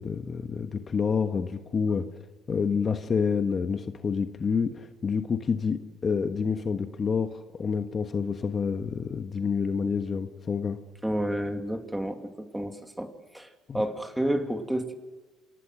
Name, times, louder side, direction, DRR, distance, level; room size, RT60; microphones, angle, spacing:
voice 1, 0.0-2.1 2.5-10.8 13.7-13.8, left 5 dB, 35° left, 7 dB, 1.4 m, -28 dB
voice 2, 11.0-14.9, right 1 dB, 5° right, 5 dB, 2.7 m, -30 dB
27.5 x 18.5 x 6.3 m, 1.3 s
supercardioid pair, 90°, 0 cm